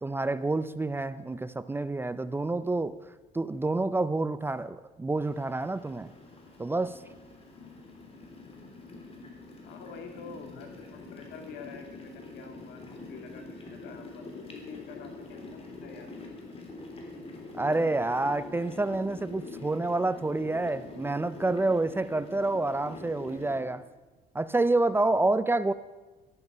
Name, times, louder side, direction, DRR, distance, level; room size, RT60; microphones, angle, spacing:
voice 1, 0.0-3.0 3.3-6.1 6.6-7.0 17.6-23.9 24.3-25.7, right 2 dB, 15° right, 15 dB, 0.4 m, -28 dB
sound 1, 5.2-23.6, left 3 dB, 35° left, 3.2 m, -45 dB
voice 2, 9.6-16.1, left 5 dB, 90° left, 4 dB, 2.5 m, -47 dB
13.0 x 12.0 x 5.5 m, 1.2 s
cardioid pair, 110°, 17 cm